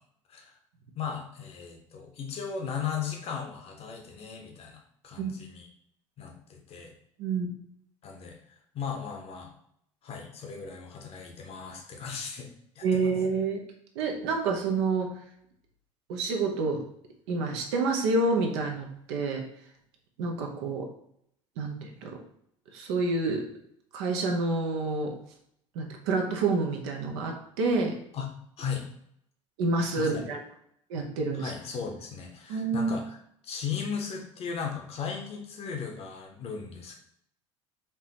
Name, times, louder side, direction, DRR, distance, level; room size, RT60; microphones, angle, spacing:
voice 1, 0.9-5.7 6.2-6.9 8.0-9.5 10.0-13.0 28.1-28.9 29.9-30.2 31.4-33.2 33.4-36.9, left 6 dB, 40° left, 2 dB, 0.9 m, -37 dB
voice 2, 12.8-13.6 14.0-15.1 16.1-16.8 17.3-19.5 20.2-20.9 21.6-22.1 22.7-23.4 23.9-25.2 25.7-28.0 29.6-30.4 30.9-31.5 32.5-32.9, right 3 dB, 60° right, 2 dB, 0.8 m, -28 dB
4.6 x 3.0 x 2.9 m, 0.71 s
figure-of-eight pair, 65°, 16 cm